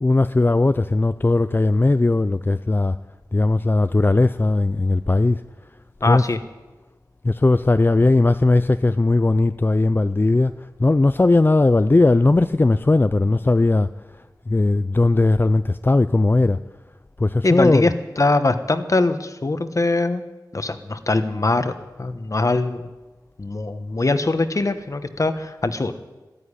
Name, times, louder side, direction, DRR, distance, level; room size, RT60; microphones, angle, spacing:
voice 1, 0.0-3.0 3.3-5.4 6.1-6.3 7.2-10.5 10.8-13.9 14.5-16.6 17.2-17.9, left 2 dB, 30° left, 12 dB, 0.4 m, -18 dB
voice 2, 6.0-6.4 17.4-20.2 20.5-21.7 22.0-22.9 23.4-25.9, left 2 dB, 50° left, 10 dB, 1.1 m, -22 dB
12.5 x 10.0 x 9.8 m, 1.2 s
wide cardioid pair, 55°, 7 cm